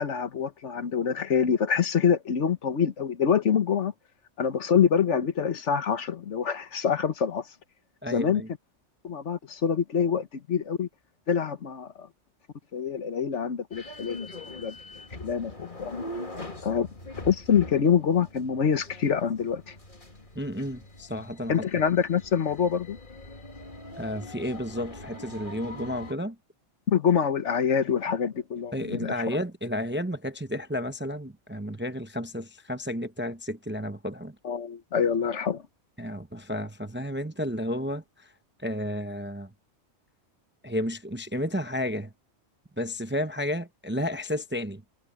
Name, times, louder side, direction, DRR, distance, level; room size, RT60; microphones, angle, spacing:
voice 1, 0.0-3.9 4.4-7.5 8.1-8.4 9.0-10.9 11.3-12.1 12.7-14.2 14.5-14.8 15.2-15.5 15.8-15.9 16.6-16.9 17.2-19.7 21.5-23.0 26.9-29.1 34.4-35.6, left 7 dB, 75° left, 1.5 m, -25 dB
voice 2, 8.0-8.5 20.4-21.6 24.0-26.4 28.7-34.3 36.0-38.0 38.6-39.5 40.6-42.1 42.8-44.8, equal, 15° right, 0.6 m, -32 dB
sound 1, 13.7-26.1, left 2 dB, 45° left, 2.6 m, -42 dB
omnidirectional pair, 1.2 m